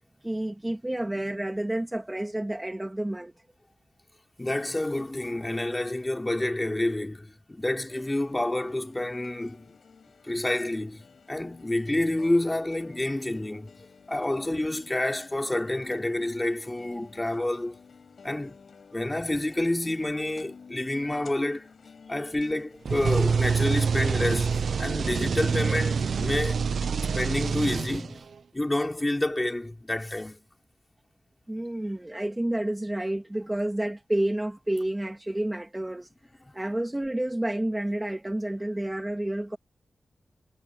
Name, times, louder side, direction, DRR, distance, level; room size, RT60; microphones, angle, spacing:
voice 1, 0.2-3.3 22.1-22.2 31.5-36.1 36.5-39.6, right 1 dB, 10° right, 2.8 m, -30 dB
voice 2, 4.4-9.8 10.2-13.7 14.1-17.8 18.2-18.6 18.9-21.7 22.1-26.6 27.1-28.3 28.5-30.5 36.5-36.6, left 1 dB, 15° left, 4.4 m, -29 dB
sound 1, 7.9-26.6, left 5 dB, 70° left, 5.5 m, -52 dB
sound 2, 22.9-28.3, right 5 dB, 75° right, 0.8 m, -26 dB
wide cardioid pair, 135°, 0 cm